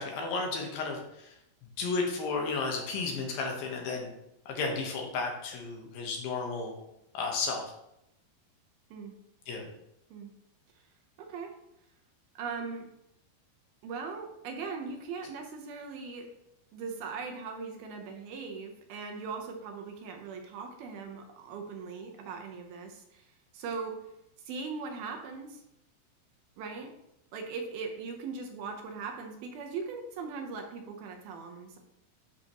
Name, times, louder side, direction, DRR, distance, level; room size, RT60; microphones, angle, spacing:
voice 1, 0.0-1.3 1.8-4.1 4.5-6.7 7.1-7.7 9.5-9.7, left 4 dB, 70° left, 1 dB, 2.7 m, -33 dB
voice 2, 11.2-11.5 12.4-12.9 13.8-16.3 16.7-23.3 23.5-24.0 24.5-25.6 26.6-26.9 27.3-31.8, right 5 dB, 75° right, 3 dB, 2.6 m, -39 dB
11.5 x 5.9 x 3.0 m, 0.84 s
omnidirectional pair, 4.6 m